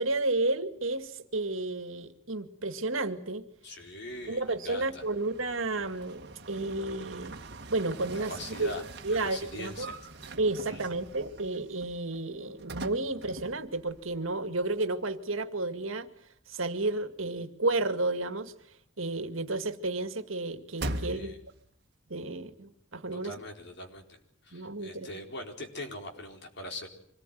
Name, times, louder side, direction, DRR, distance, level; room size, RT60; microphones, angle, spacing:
voice 1, 0.0-3.5 4.3-7.4 7.7-8.3 8.6-8.7 9.0-9.9 10.4-16.1 16.5-18.5 19.0-21.3 22.1-23.3 24.5-25.1, right 2 dB, 75° right, 9 dB, 2.0 m, -32 dB
voice 2, 3.6-5.0 8.3-8.8 9.1-9.9 10.7-10.8 21.0-21.4 23.1-24.2 24.4-26.9, left 1 dB, 55° left, 3 dB, 4.5 m, -42 dB
sound 1, 4.1-14.4 14.6-14.7 20.8-21.7, right 2 dB, 55° right, 1.9 m, -43 dB
25.5 x 19.5 x 9.3 m, 0.70 s
head